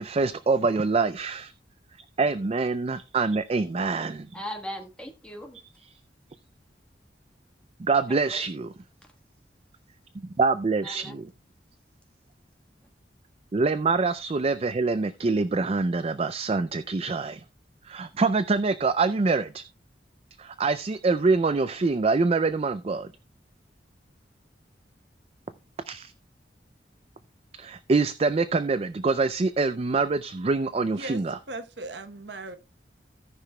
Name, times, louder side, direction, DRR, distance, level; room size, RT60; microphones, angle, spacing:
voice 1, 0.0-1.5 2.2-4.3 7.8-8.7 10.4-11.2 13.5-17.4 17.9-19.6 20.4-23.1 25.9-26.1 27.6-31.4, right 4 dB, 35° right, 0.4 m, -25 dB
voice 2, 4.3-5.6 8.1-8.4 10.8-11.2 12.8-12.9, equal, 5° left, 1.3 m, -39 dB
voice 3, 31.5-32.6, right 2 dB, 80° right, 1.0 m, -38 dB
17.5 x 5.8 x 2.3 m
head